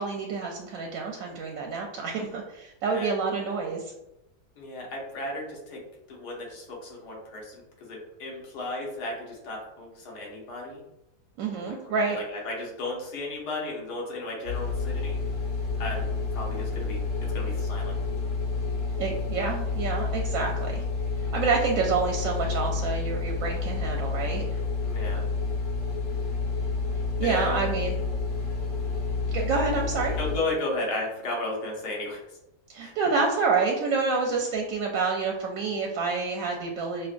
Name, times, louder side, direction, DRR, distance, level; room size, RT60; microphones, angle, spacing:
voice 1, 0.0-3.9 11.4-12.2 19.0-20.8 21.3-24.4 27.2-28.0 29.3-30.2 32.7-37.1, right 4 dB, 70° right, 1 dB, 0.9 m, -28 dB
voice 2, 4.6-5.8 6.1-10.8 11.5-15.2 15.8-16.0 16.3-17.0 17.3-17.9 24.8-25.2 27.2-27.7 30.2-32.2 32.8-32.9, left 2 dB, 75° left, -2 dB, 1.6 m, -34 dB
sound 1, 14.4-30.4, left 4 dB, 45° left, 0.7 m, -29 dB
5.4 x 2.2 x 2.5 m, 0.89 s
omnidirectional pair, 1.8 m